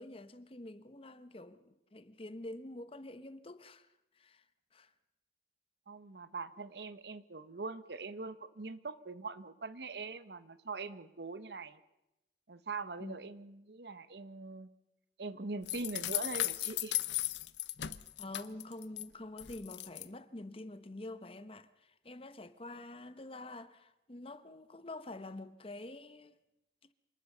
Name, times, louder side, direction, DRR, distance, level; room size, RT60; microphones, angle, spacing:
voice 1, 0.0-3.9 4.2-4.4 4.7-4.9 13.0-13.2 18.2-26.4, left 2 dB, 30° left, 0.9 m, -47 dB
voice 2, 5.9-11.8 12.5-14.7 15.2-17.0, right 3 dB, 70° right, 1.0 m, -42 dB
sound 1, 15.7-19.0 19.4-20.1, left 16 dB, 90° left, 0.7 m, -36 dB
26.0 x 19.5 x 6.7 m
head